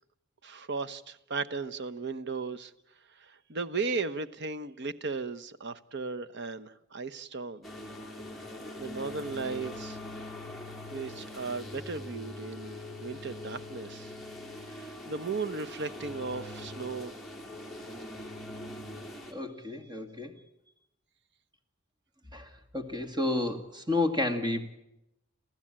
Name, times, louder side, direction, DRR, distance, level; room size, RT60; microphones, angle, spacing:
voice 1, 0.4-2.7 3.2-7.6 8.8-10.0 10.9-14.1 14.7-17.1, right 4 dB, 60° right, 1.0 m, -36 dB
sound 1, 7.6-19.3, left 1 dB, ahead, 3.3 m, -42 dB
voice 2, 19.3-20.3 22.3-24.6, left 2 dB, 20° right, 2.2 m, -31 dB
29.0 x 15.0 x 8.9 m
head